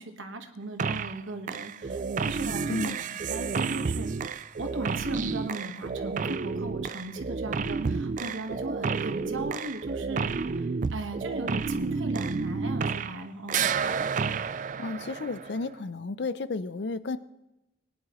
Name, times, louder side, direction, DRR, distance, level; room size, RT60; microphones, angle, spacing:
voice 1, 0.0-4.1 4.6-13.7, right 2 dB, 90° right, 5 dB, 1.5 m, -37 dB
sound 1, 0.8-1.2 1.5-13.2 13.5-15.7, right 5 dB, 40° right, 0.3 m, -31 dB
voice 2, 14.8-17.2, left 3 dB, 60° left, 14 dB, 0.5 m, -32 dB
20.0 x 10.0 x 3.1 m, 0.93 s
head